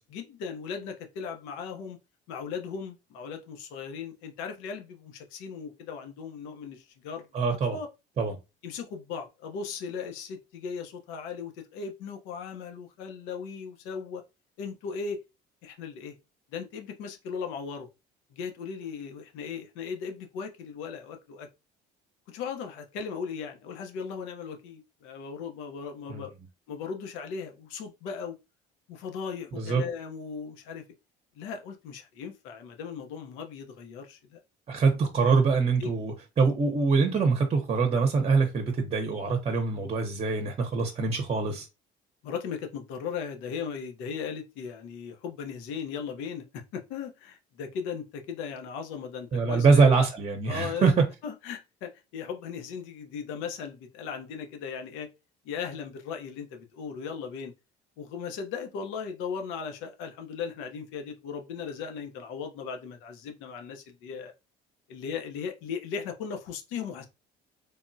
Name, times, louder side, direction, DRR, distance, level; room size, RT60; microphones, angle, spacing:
voice 1, 0.1-2.0 2.3-7.9 8.6-14.2 14.6-15.2 15.6-16.1 16.5-17.9 18.3-21.5 22.3-26.3 26.7-28.4 28.9-30.8 31.4-34.4 34.9-35.0 35.8-35.9 42.2-49.8 50.5-50.9 51.2-55.1 55.4-57.5 58.0-64.3 64.9-67.0, left 6 dB, 85° left, 0.8 m, -37 dB
voice 2, 7.3-7.8 8.2-8.4 26.1-26.2 29.6-29.8 34.7-41.7 49.3-51.0, right 4 dB, 30° right, 0.7 m, -24 dB
3.4 x 2.2 x 2.6 m
cardioid pair, 100°, 20 cm